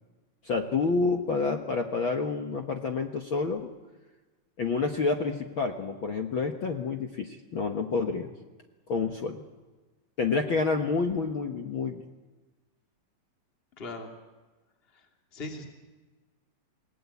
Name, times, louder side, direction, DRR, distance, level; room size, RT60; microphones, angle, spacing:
voice 1, 0.4-3.7 4.6-8.3 8.9-9.4 10.2-12.0, left 4 dB, 60° left, 4 dB, 1.4 m, -28 dB
voice 2, 13.8-14.1 14.9-15.7, left 2 dB, 20° left, 3 dB, 2.5 m, -40 dB
29.0 x 19.0 x 8.4 m, 1.2 s
omnidirectional pair, 4.1 m